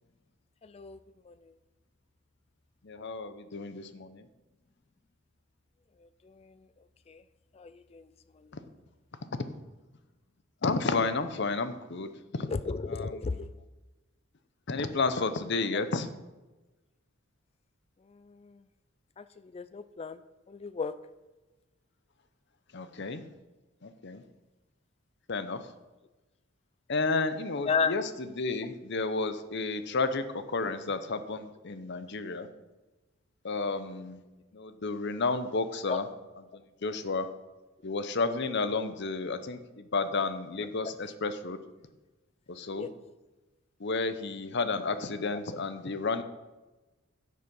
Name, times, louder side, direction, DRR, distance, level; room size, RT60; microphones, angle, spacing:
voice 1, 0.6-1.0 1.3-1.5 6.0-6.6 7.1-7.2 7.5-8.1 8.4-8.5 12.5-13.5 18.1-18.6 19.2-20.2 20.5-20.9 27.6-27.9 30.6-30.7 33.6-33.7 35.9-36.0 40.8-40.9 42.7-42.9, left 5 dB, 30° left, 13 dB, 0.3 m, -34 dB
voice 2, 2.8-4.3 10.6-12.5 12.9-13.1 14.7-16.1 22.7-23.2 23.8-24.2 25.3-25.6 26.9-32.5 33.4-34.2 34.5-36.1 36.5-37.3 37.8-41.6 42.5-42.9 43.8-46.2, left 3 dB, 55° left, 11 dB, 0.7 m, -31 dB
10.5 x 6.3 x 5.5 m, 1.1 s
head